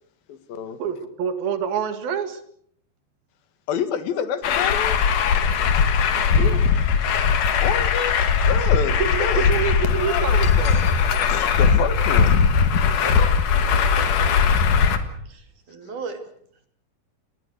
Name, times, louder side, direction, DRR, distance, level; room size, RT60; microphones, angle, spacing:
voice 1, 0.3-0.8 3.7-5.0 7.6-9.5 11.2-12.4, left 8 dB, 85° left, 11 dB, 3.5 m, -28 dB
voice 2, 0.8-2.4 6.3-6.6 9.0-11.0, right 7 dB, 90° right, 9 dB, 3.9 m, -27 dB
Truck, 4.4-15.0, left 6 dB, 65° left, 3.1 m, -19 dB
voice 3, 13.6-14.4 15.3-16.2, right 4 dB, 60° right, 6 dB, 4.0 m, -37 dB
28.5 x 20.5 x 6.5 m, 0.65 s
omnidirectional pair, 4.1 m